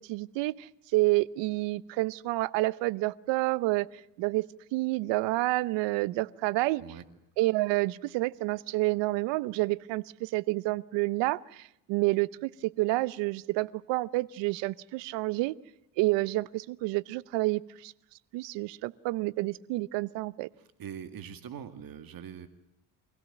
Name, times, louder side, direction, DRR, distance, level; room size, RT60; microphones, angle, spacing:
voice 1, 0.0-3.9 4.2-6.8 7.4-15.6 16.0-17.9 18.3-20.5, right 20 dB, 75° right, 20 dB, 0.9 m, -29 dB
voice 2, 20.6-22.5, right 8 dB, 50° right, 10 dB, 2.1 m, -43 dB
25.5 x 17.0 x 9.2 m, 0.85 s
supercardioid pair, 85°, 43 cm